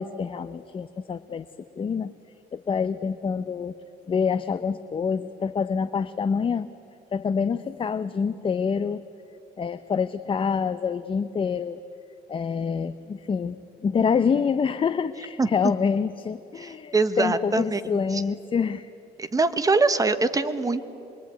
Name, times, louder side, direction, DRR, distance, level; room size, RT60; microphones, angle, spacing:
voice 1, 0.0-2.1 2.5-3.8 4.1-6.7 7.1-9.0 9.6-11.8 12.3-18.9, left 6 dB, 30° left, 11 dB, 0.7 m, -26 dB
voice 2, 16.6-18.2 19.2-20.8, right 3 dB, 20° right, 11 dB, 1.2 m, -23 dB
25.5 x 22.5 x 9.4 m, 2.7 s
cardioid pair, 110°, 17 cm